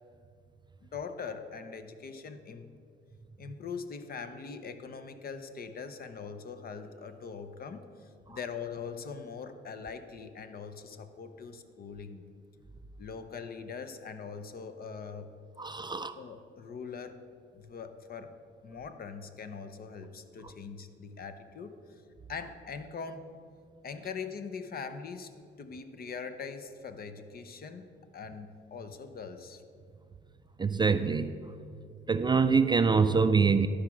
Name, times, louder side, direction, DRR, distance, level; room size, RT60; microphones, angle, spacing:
voice 1, 0.8-2.8 3.4-12.2 13.0-15.3 16.1-17.2 17.5-18.3 18.6-21.8 22.3-23.3 23.8-27.9 28.1-29.6, left 5 dB, 50° left, 9 dB, 0.8 m, -42 dB
voice 2, 15.6-16.1 30.6-31.3 32.1-33.7, right 5 dB, 25° right, 10 dB, 0.3 m, -25 dB
12.0 x 4.9 x 5.9 m, 2.3 s
cardioid pair, 90°, 20 cm